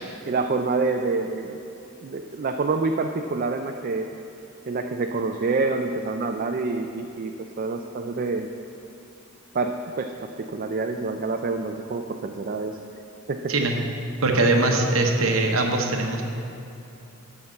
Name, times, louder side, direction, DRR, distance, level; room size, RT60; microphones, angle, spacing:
voice 1, 0.3-1.6 2.0-4.1 4.7-7.3 7.6-8.5 9.5-12.8 13.3-13.5, right 3 dB, 40° right, 4 dB, 0.4 m, -27 dB
voice 2, 14.2-16.2, right 2 dB, 70° right, 2 dB, 0.9 m, -21 dB
8.1 x 5.8 x 7.6 m, 2.8 s
head